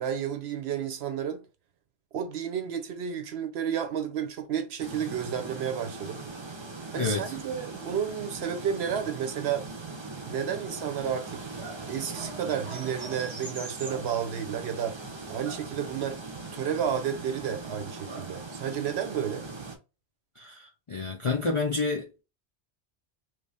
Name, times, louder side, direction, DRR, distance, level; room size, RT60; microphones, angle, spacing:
voice 1, 0.0-1.4 2.1-6.2 6.9-9.7 10.3-11.4 11.9-15.0 15.3-16.2 16.5-19.4, right 8 dB, 70° right, 0.9 m, -31 dB
sound 1, 4.8-19.8, right 3 dB, 30° right, 0.6 m, -40 dB
voice 2, 6.9-7.4 20.4-22.2, left 4 dB, 45° left, 0.4 m, -29 dB
3.1 x 2.6 x 3.3 m
omnidirectional pair, 1.2 m